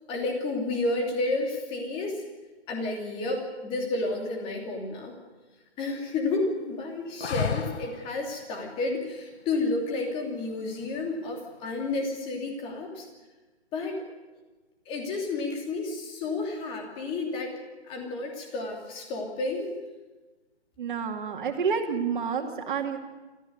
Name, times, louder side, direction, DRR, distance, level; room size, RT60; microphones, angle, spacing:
voice 1, 0.1-2.2 2.7-5.1 5.8-13.1 13.7-14.0 14.9-17.6 17.9-19.7, left 2 dB, 15° left, 2 dB, 2.9 m, -31 dB
sound 1, 7.2-8.1 10.7-11.3, left 6 dB, 75° left, 1.1 m, -31 dB
voice 2, 20.8-23.0, right 6 dB, 45° right, 3 dB, 2.7 m, -29 dB
27.0 x 14.5 x 8.1 m, 1.2 s
hypercardioid pair, 155°, 33 cm